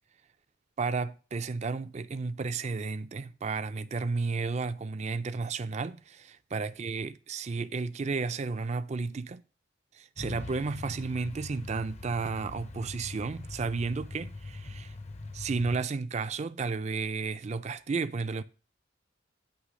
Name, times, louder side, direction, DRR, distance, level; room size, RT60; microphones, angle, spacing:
voice 1, 0.8-9.4 9.9-14.9 15.3-18.4, right 4 dB, 35° right, 0.4 m, -33 dB
Truck, 10.2-15.8, left 2 dB, 35° left, 0.6 m, -42 dB
9.7 x 3.3 x 6.2 m
head